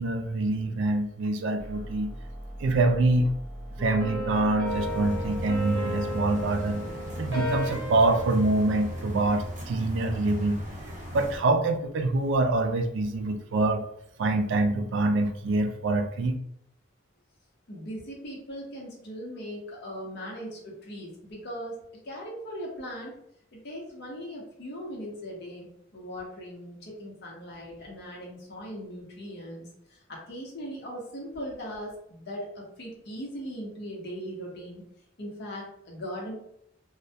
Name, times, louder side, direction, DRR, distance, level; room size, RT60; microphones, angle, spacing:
voice 1, 0.0-2.1 2.6-3.3 3.8-6.9 7.2-10.6 11.1-13.8 14.2-16.4, right 2 dB, 65° right, 7 dB, 0.3 m, -25 dB
sound 1, 1.6-5.6, equal, 10° left, 0.8 m, -40 dB
sound 2, 3.8-9.4, equal, 80° right, 0.7 m, -34 dB
sound 3, 4.6-11.4, equal, 40° right, 0.7 m, -37 dB
voice 2, 17.7-21.8 22.0-23.2 23.5-34.8 35.2-36.3, equal, 55° left, -2 dB, 0.8 m, -39 dB
2.2 x 2.1 x 2.7 m, 0.74 s
head